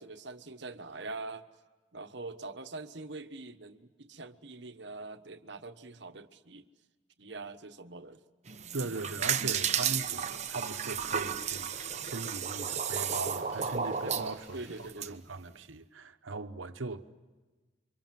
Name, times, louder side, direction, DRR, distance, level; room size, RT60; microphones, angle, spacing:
voice 1, 0.0-1.4 1.9-6.7 7.2-8.2 14.5-15.3, right 3 dB, 65° right, 1.3 m, -44 dB
sound 1, 8.5-15.1, right 7 dB, 35° right, 1.0 m, -33 dB
voice 2, 8.7-14.6 15.1-17.0, right 3 dB, 90° right, 1.2 m, -39 dB
sound 2, 9.2-14.9, left 2 dB, 85° left, 6.6 m, -58 dB
28.5 x 25.0 x 7.7 m
head